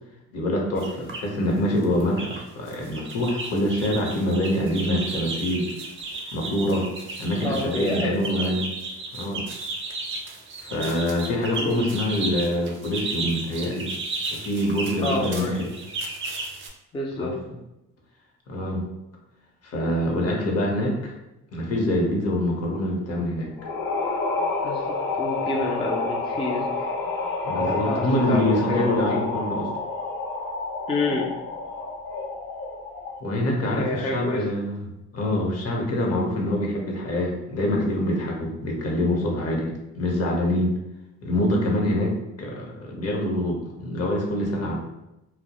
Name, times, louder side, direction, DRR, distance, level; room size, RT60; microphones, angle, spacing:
voice 1, 0.3-5.7 6.3-6.9 7.2-8.7 9.1-9.5 10.6-13.9 14.3-15.7 17.2-17.3 18.5-18.9 19.6-21.1 21.5-23.5 27.4-29.7 33.2-34.8 35.1-39.7 39.9-40.7 41.2-42.1 42.4-44.8, left 1 dB, 55° left, 0 dB, 0.7 m, -25 dB
sound 1, 0.8-1.3 1.8-2.4 2.7-16.7, right 3 dB, 40° right, 0.5 m, -34 dB
voice 2, 7.4-8.5 11.6-11.8 15.0-15.5 16.9-17.4 24.6-26.9 27.7-29.2 30.9-31.3 33.7-34.5, left 2 dB, 20° left, -1 dB, 0.3 m, -28 dB
breath of death, 23.6-33.3, left 3 dB, 85° left, 0.5 m, -29 dB
2.2 x 2.0 x 2.8 m, 0.93 s
cardioid pair, 90°, 30 cm